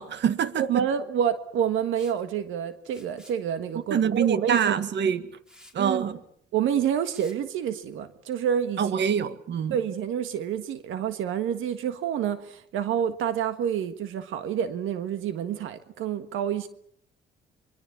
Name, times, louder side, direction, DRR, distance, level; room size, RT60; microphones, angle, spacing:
voice 1, 0.0-0.9 3.9-5.3 5.7-6.2 8.8-9.8, right 8 dB, 65° right, 1.7 m, -25 dB
voice 2, 0.6-4.8 5.8-6.0 6.5-9.0 9.7-16.7, right 9 dB, 85° right, 1.6 m, -28 dB
Liquid, 1.9-2.2 2.8-3.4 4.5-4.7 5.1-5.2 5.5-5.8 7.1-7.4, left 1 dB, 5° right, 4.2 m, -52 dB
26.0 x 23.5 x 7.1 m
cardioid pair, 90°, 20 cm